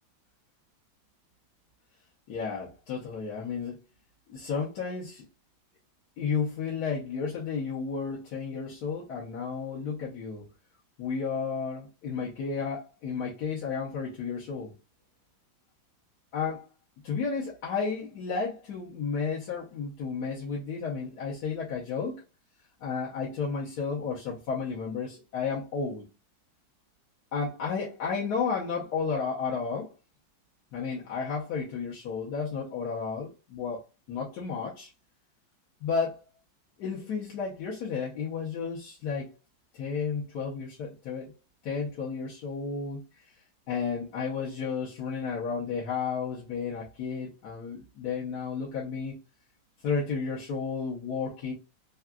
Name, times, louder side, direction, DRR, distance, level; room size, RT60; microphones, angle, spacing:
voice 1, 2.3-3.8 4.3-5.2 6.2-10.4 11.0-14.7 16.3-16.7 17.0-22.2 22.8-26.1 27.3-29.9 30.7-33.8 34.1-34.9 35.8-36.2 36.8-39.3 39.7-41.3 41.6-43.0 43.7-49.2 49.8-51.5, left 5 dB, 60° left, 1.2 m, -32 dB
3.7 x 2.3 x 2.2 m
omnidirectional pair, 2.1 m